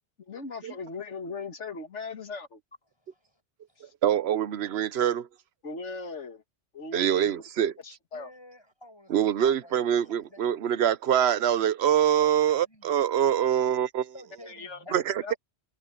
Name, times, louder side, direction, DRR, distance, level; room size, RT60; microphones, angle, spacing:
voice 1, 0.2-2.6 3.8-3.9 5.6-6.4 6.7-7.3 7.8-8.3 14.5-14.8 15.2-15.3, left 4 dB, 90° left, 2.1 m, -38 dB
voice 2, 2.8-3.4 3.7-3.9 5.9-6.0 6.9-7.3 8.1-10.5 12.2-12.9 14.1-15.4, left 1 dB, 20° left, 7.9 m, -51 dB
voice 3, 4.0-5.3 6.9-7.7 9.1-14.1 14.9-15.3, right 9 dB, 65° right, 1.0 m, -24 dB
omnidirectional pair, 1.2 m